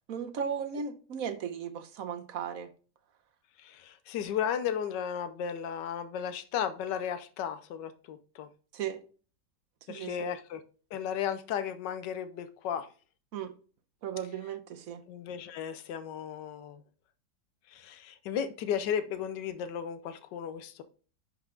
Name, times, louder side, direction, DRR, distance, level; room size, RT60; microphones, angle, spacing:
voice 1, 0.1-2.7 8.7-9.0 9.9-10.3 13.3-13.5 14.0-15.0, right 7 dB, 60° right, 1.2 m, -36 dB
voice 2, 3.6-8.5 9.9-10.6 10.9-12.9 15.1-16.8 17.7-20.8, left 8 dB, 90° left, 1.4 m, -34 dB
10.5 x 4.8 x 3.8 m
omnidirectional pair, 1.8 m